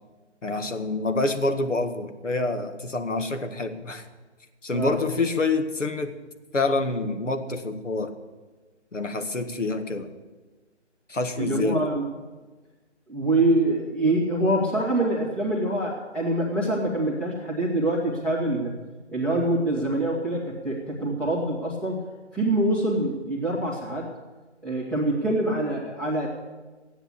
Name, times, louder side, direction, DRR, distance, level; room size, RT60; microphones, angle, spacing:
voice 1, 0.4-4.0 4.6-6.1 6.5-8.1 8.9-10.1 11.1-11.9, left 3 dB, 80° left, 7 dB, 1.7 m, -27 dB
voice 2, 11.4-12.1 13.1-18.7 19.1-22.0 22.3-24.1 24.6-26.3, right 1 dB, 5° left, -6 dB, 1.7 m, -25 dB
14.5 x 9.2 x 8.6 m, 1.3 s
figure-of-eight pair, 150°, 36 cm